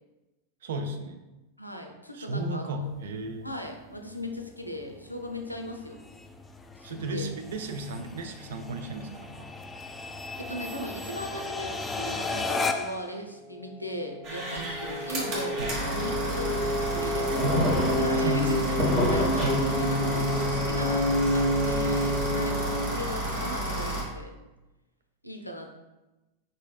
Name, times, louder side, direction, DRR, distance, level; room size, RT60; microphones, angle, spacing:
voice 1, 0.6-1.2 2.1-3.5 6.8-9.5 15.6-15.8 17.3-19.6, right 1 dB, 60° right, 6 dB, 0.5 m, -33 dB
voice 2, 1.6-2.9 3.4-6.0 6.8-7.3 10.4-17.4 18.0-18.7 19.1-24.4 25.2-25.7, equal, 90° left, 4 dB, 0.5 m, -38 dB
sound 1, 2.8-13.1, left 3 dB, 15° left, 0.3 m, -36 dB
sound 2, 13.4-22.8, left 1 dB, 10° right, 1.5 m, -29 dB
sound 3, 14.2-24.0, right 1 dB, 40° right, 1.3 m, -30 dB
4.9 x 4.0 x 2.3 m, 1.1 s
figure-of-eight pair, 90°, 0 cm